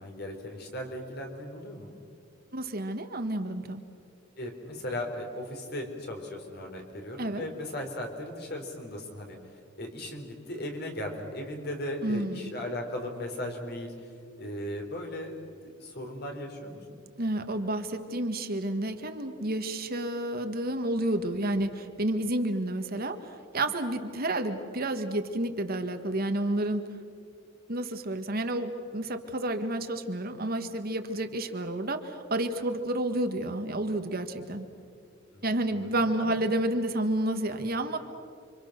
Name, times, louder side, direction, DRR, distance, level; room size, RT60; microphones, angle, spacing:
voice 1, 0.0-2.0 4.4-9.4 9.8-14.1 14.4-15.4 15.6-17.0 35.3-35.9 36.2-36.4, left 1 dB, 55° left, 3 dB, 4.0 m, -37 dB
voice 2, 2.5-3.8 7.2-7.4 12.0-12.5 17.2-27.0 27.7-34.7 35.4-38.0, right 1 dB, 50° right, 7 dB, 1.7 m, -30 dB
29.5 x 25.0 x 6.7 m, 2.3 s
head